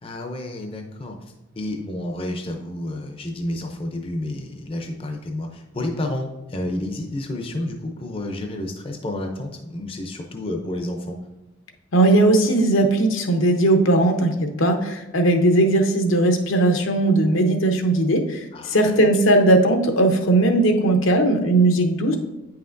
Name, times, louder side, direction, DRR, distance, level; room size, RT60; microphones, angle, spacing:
voice 1, 0.0-11.2 18.5-18.8 22.1-22.2, left 1 dB, 25° left, 3 dB, 0.5 m, -30 dB
voice 2, 11.9-22.2, right 2 dB, 80° left, 5 dB, 0.8 m, -18 dB
8.7 x 5.7 x 2.6 m, 1.0 s
head